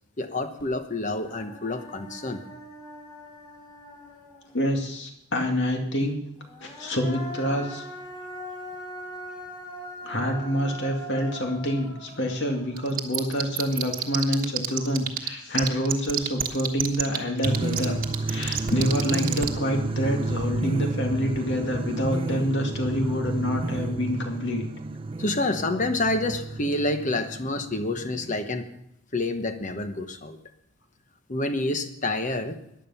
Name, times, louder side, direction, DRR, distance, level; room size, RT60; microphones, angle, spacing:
voice 1, 0.2-2.4 25.2-28.6 29.1-30.4 31.3-32.5, left 2 dB, 35° left, 8 dB, 1.1 m, -28 dB
Human voice, 0.6-0.7 1.0-4.7 6.4-13.6, equal, 20° left, 5.8 m, -41 dB
voice 2, 4.5-6.2 6.6-7.8 10.0-18.0 18.3-24.6, equal, 55° left, 3 dB, 2.3 m, -27 dB
sound 1, 12.8-15.3 15.5-19.5, right 10 dB, 40° right, 1.3 m, -26 dB
sound 2, 17.4-28.4, right 3 dB, 25° right, 0.5 m, -31 dB
15.0 x 10.5 x 5.7 m, 0.77 s
head